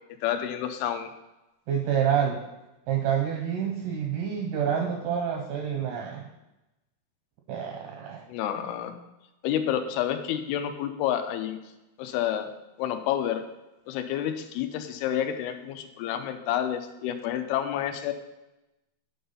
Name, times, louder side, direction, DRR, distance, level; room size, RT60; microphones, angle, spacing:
voice 1, 0.2-1.1 8.3-8.9 9.4-11.6 12.0-12.5 12.8-13.4 13.9-18.1, left 10 dB, 85° left, 7 dB, 2.5 m, -29 dB
voice 2, 1.7-2.4 2.9-6.3 7.5-8.2, right 8 dB, 80° right, 1 dB, 1.9 m, -28 dB
10.0 x 4.0 x 5.5 m, 0.98 s
omnidirectional pair, 4.5 m